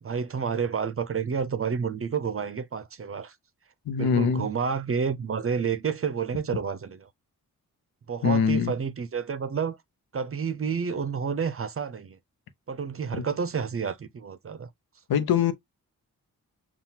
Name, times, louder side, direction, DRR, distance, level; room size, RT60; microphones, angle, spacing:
voice 1, 0.0-3.4 4.0-7.1 8.1-9.8 10.1-12.2 12.7-14.7, right 6 dB, 40° right, 0.5 m, -30 dB
voice 2, 3.9-4.5 8.2-8.7 13.1-13.3 15.1-15.5, left 7 dB, 80° left, 0.8 m, -23 dB
5.6 x 2.4 x 2.7 m
cardioid pair, 55°, 36 cm